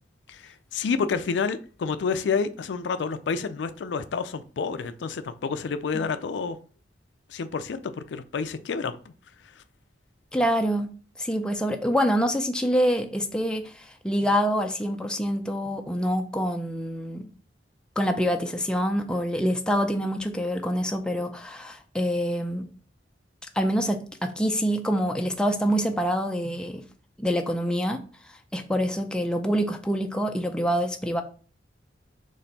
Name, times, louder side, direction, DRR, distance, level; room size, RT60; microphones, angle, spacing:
voice 1, 0.3-6.6 7.3-9.0 9.6-9.7, left 5 dB, 85° left, 0.4 m, -29 dB
voice 2, 10.3-10.9 11.2-17.3 18.0-22.7 23.6-26.8 27.2-28.0 28.5-31.2, equal, 5° left, 0.4 m, -26 dB
4.3 x 3.1 x 4.0 m
head